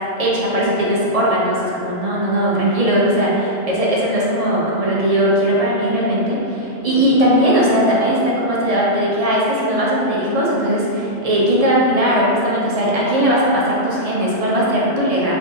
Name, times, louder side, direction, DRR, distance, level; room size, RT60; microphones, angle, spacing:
voice 1, 0.2-3.3 3.7-15.3, equal, 45° right, -5 dB, 0.6 m, -18 dB
3.5 x 2.4 x 3.7 m, 2.8 s
omnidirectional pair, 1.0 m